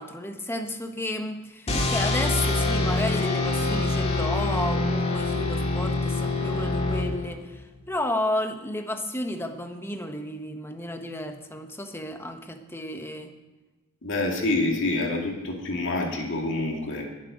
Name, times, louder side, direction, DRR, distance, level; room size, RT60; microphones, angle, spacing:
voice 1, 0.0-13.3, left 1 dB, 10° left, 6 dB, 1.1 m, -32 dB
sound 1, 1.7-7.5, left 2 dB, 30° left, 2.0 m, -25 dB
voice 2, 14.0-17.0, left 2 dB, 60° left, 0 dB, 2.3 m, -27 dB
20.5 x 7.7 x 5.1 m, 1.2 s
head